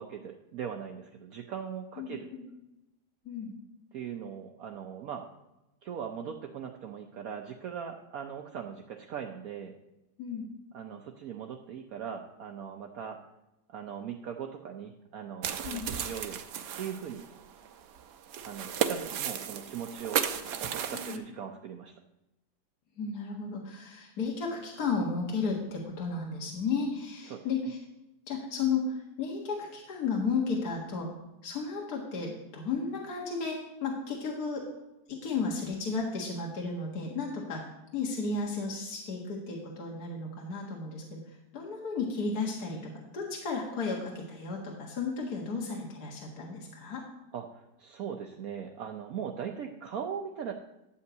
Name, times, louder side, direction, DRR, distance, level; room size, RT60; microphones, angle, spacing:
voice 1, 0.0-2.3 3.9-5.3 5.8-9.7 10.7-13.2 13.7-16.4 16.8-17.3 18.4-20.2 20.6-21.9 27.3-27.4 47.3-50.5, right 8 dB, 65° right, 3 dB, 1.1 m, -40 dB
voice 2, 2.0-2.4 3.3-3.5 10.2-10.5 15.6-15.9 20.9-21.2 23.0-27.8 28.3-31.1 31.4-34.6 35.1-37.6 37.9-47.0, left 4 dB, 65° left, -2 dB, 2.0 m, -33 dB
sound 1, 15.4-21.2, right 8 dB, 85° right, 1.4 m, -34 dB
11.0 x 5.7 x 7.8 m, 0.96 s
omnidirectional pair, 1.8 m